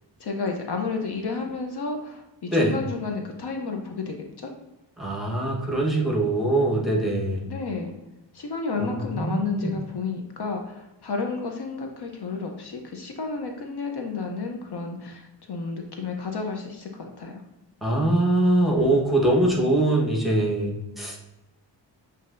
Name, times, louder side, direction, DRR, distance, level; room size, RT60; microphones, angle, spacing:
voice 1, 0.2-4.5 7.5-7.9 8.3-17.4, left 4 dB, 60° left, 3 dB, 0.6 m, -31 dB
voice 2, 5.0-7.4 8.8-9.7 17.8-21.2, right 1 dB, ahead, -3 dB, 1.0 m, -23 dB
7.3 x 2.7 x 2.5 m, 0.98 s
wide cardioid pair, 110°, 45 cm